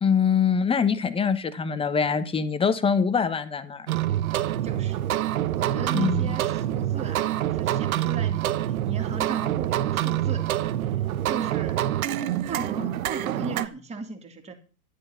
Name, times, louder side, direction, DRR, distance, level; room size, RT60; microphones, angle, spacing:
voice 1, 0.0-3.9 5.9-6.4, left 6 dB, 10° left, 13 dB, 1.1 m, -24 dB
sound 1, 3.9-13.7, right 13 dB, 65° right, 1.3 m, -26 dB
voice 2, 4.6-5.0 5.5-8.5 8.9-10.5 11.3-11.9 12.5-14.5, right 4 dB, 15° right, 4 dB, 2.7 m, -37 dB
12.5 x 10.0 x 5.8 m, 0.37 s
hypercardioid pair, 120°, 45 cm